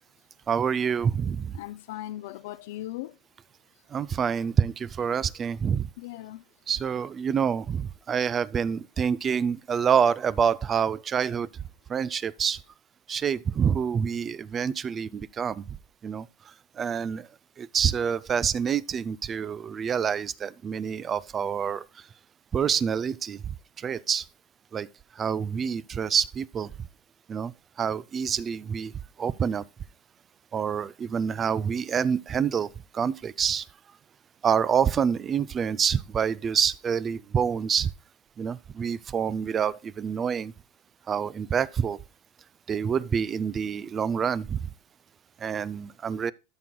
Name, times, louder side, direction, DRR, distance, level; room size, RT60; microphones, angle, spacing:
voice 1, 0.5-1.5 3.9-5.9 6.7-11.5 11.9-12.6 13.1-15.6 16.0-16.2 16.8-17.2 17.6-21.8 22.5-23.4 23.8-24.2 24.7-24.9 25.2-26.7 27.3-27.5 27.8-28.9 29.2-29.6 30.5-32.7 32.9-33.6 34.4-37.9 38.4-40.5 41.1-42.0 42.7-44.6 45.4-46.3, right 7 dB, 25° right, 0.3 m, -27 dB
voice 2, 1.5-3.2 6.0-6.4, left 15 dB, 75° left, 0.4 m, -38 dB
13.0 x 6.0 x 2.2 m
supercardioid pair, 135°, 0 cm